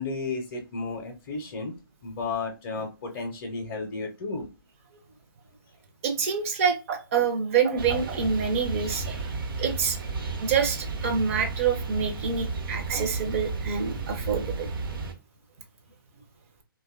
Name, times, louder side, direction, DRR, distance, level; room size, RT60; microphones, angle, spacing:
voice 1, 0.0-1.7 2.0-4.5, left 3 dB, 35° left, 1 dB, 0.5 m, -33 dB
voice 2, 6.0-9.3 9.6-10.0 10.4-14.7, right 6 dB, 35° right, 4 dB, 0.5 m, -27 dB
sound 1, 7.8-15.1, right 4 dB, 70° right, 0.7 m, -33 dB
2.5 x 2.2 x 2.3 m, 0.29 s
hypercardioid pair, 140°, 12 cm